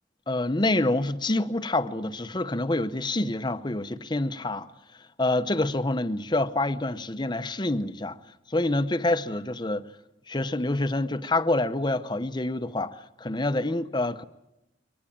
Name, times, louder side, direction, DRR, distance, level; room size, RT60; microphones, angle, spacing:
voice 1, 0.3-4.7 5.2-8.2 8.5-9.8 10.3-14.2, left 2 dB, 25° left, 0.9 m, -27 dB
24.0 x 19.0 x 8.7 m
head